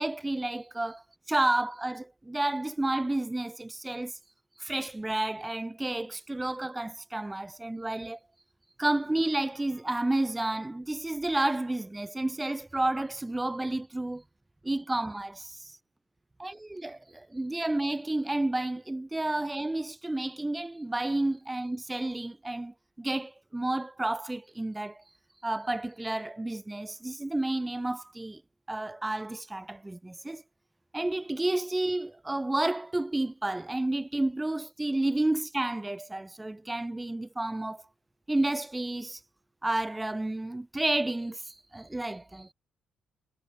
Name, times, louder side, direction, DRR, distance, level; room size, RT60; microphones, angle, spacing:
voice 1, 0.0-4.2 4.6-8.2 8.8-14.2 14.6-15.8 16.4-25.0 25.4-28.4 28.7-30.4 30.9-37.8 38.3-39.2 39.6-42.5, right 2 dB, 15° right, 4.3 m, -31 dB
cardioid pair, 90°, 0 cm